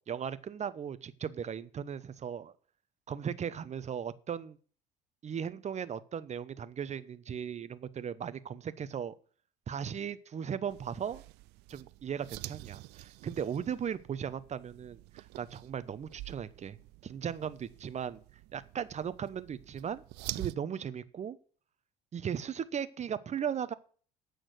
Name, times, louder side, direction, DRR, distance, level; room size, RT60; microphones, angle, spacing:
voice 1, 0.1-2.5 3.1-4.6 5.2-9.1 9.7-11.2 11.7-16.8 17.0-18.2 18.5-20.0 20.3-21.4 22.1-23.7, right 8 dB, 35° right, 0.9 m, -37 dB
sound 1, 10.7-20.6, right 19 dB, 60° right, 0.4 m, -47 dB
8.9 x 6.4 x 8.0 m
hypercardioid pair, 60°, 19 cm